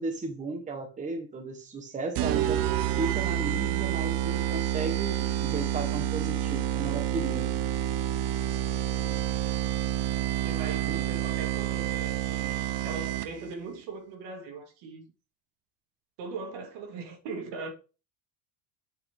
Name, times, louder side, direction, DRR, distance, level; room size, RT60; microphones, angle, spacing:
voice 1, 0.0-2.6 2.9-7.6 10.9-11.0, right 3 dB, 15° right, 1.2 m, -35 dB
sound 1, 2.2-13.5, right 12 dB, 50° right, 0.7 m, -29 dB
voice 2, 10.4-15.0 16.2-17.7, right 4 dB, 70° right, 2.3 m, -40 dB
8.7 x 5.7 x 3.6 m
cardioid pair, 165°, 46 cm